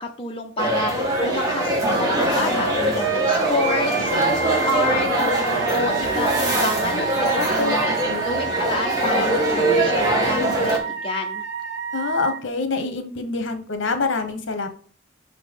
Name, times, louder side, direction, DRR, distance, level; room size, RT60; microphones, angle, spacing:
voice 1, 0.0-7.9 8.2-11.4, left 2 dB, 25° left, 1 dB, 0.7 m, -29 dB
sound 1, 0.6-10.8, right 1 dB, 20° right, 1.8 m, -22 dB
Wind instrument woodwind instrument, 2.5-12.4, right 5 dB, 60° right, 1.5 m, -29 dB
voice 2, 7.4-8.3 11.9-14.7, left 3 dB, 65° left, 8 dB, 1.1 m, -26 dB
5.9 x 4.7 x 5.3 m, 0.44 s
head